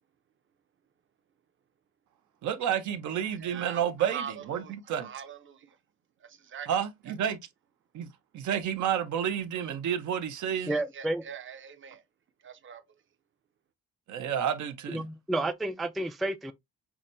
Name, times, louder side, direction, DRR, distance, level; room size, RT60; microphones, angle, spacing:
voice 1, 2.4-5.1 6.7-7.4 7.9-8.1 8.3-10.8 14.1-15.0, right 9 dB, 75° right, 0.8 m, -30 dB
voice 2, 3.4-5.8 6.2-6.7 7.1-7.2 10.6-12.0 12.4-12.8, right 8 dB, 40° right, 0.7 m, -43 dB
voice 3, 10.7-11.2 14.9-16.5, right 2 dB, ahead, 0.3 m, -31 dB
5.8 x 2.2 x 2.5 m
cardioid pair, 90°, 30 cm